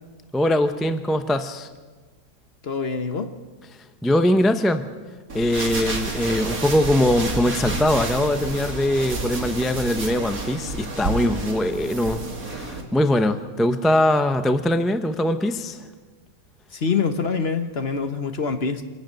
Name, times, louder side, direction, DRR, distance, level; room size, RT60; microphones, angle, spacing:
voice 1, 0.3-1.7 4.0-4.9 5.3-15.8, left 1 dB, ahead, 8 dB, 0.3 m, -22 dB
voice 2, 2.6-3.3 16.7-18.8, left 5 dB, 40° left, 8 dB, 1.1 m, -25 dB
sound 1, 5.3-12.8, right 2 dB, 55° right, 2.8 m, -30 dB
25.5 x 12.0 x 9.2 m, 1.4 s
omnidirectional pair, 1.8 m